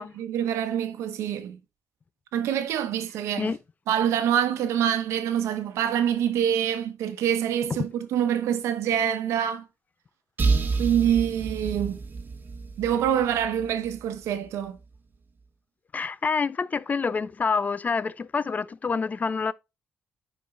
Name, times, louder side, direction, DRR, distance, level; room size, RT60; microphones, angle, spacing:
voice 1, 0.0-1.6 2.3-3.5 3.9-9.6 10.8-12.0 12.8-14.8, right 9 dB, 90° right, 1.0 m, -25 dB
sound 1, 10.4-14.1, right 4 dB, 45° right, 1.3 m, -29 dB
voice 2, 15.9-19.5, left 5 dB, 35° left, 0.5 m, -27 dB
10.5 x 4.5 x 3.2 m
cardioid pair, 80°, 5 cm